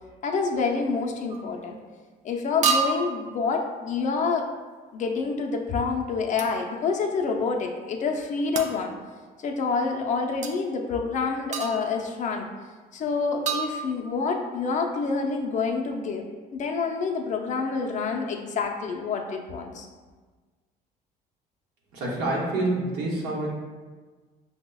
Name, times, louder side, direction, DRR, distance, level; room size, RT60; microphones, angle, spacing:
voice 1, 0.2-1.8 2.2-4.5 4.9-8.9 9.4-12.5 12.9-16.2 16.5-19.9, left 4 dB, 45° left, 2 dB, 0.5 m, -27 dB
sound 1, 1.3-1.5 2.6-3.2 6.4-6.6 8.6-8.8 10.4-10.5 11.5-12.0 13.5-14.3, right 5 dB, 45° right, 0.4 m, -28 dB
voice 2, 21.9-23.5, right 2 dB, 85° right, -4 dB, 0.9 m, -27 dB
5.3 x 2.0 x 2.2 m, 1.4 s
cardioid pair, 110°, 17 cm